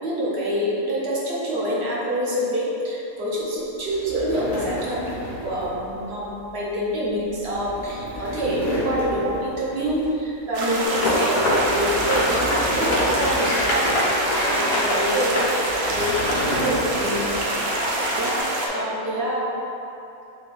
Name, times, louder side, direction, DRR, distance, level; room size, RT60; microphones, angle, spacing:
voice 1, 0.0-5.0 5.4-17.2 18.1-18.4 18.6-19.5, equal, 50° right, -7 dB, 1.0 m, -26 dB
sound 1, 3.9-10.4 10.8-11.1 11.5-14.5 15.3-17.8, equal, 55° left, 1.5 m, -33 dB
sound 2, 10.5-18.7, right 2 dB, 80° right, 1.1 m, -26 dB
sound 3, 10.8-18.4, left 1 dB, 75° left, 1.2 m, -25 dB
4.1 x 2.9 x 3.7 m, 2.9 s
omnidirectional pair, 1.5 m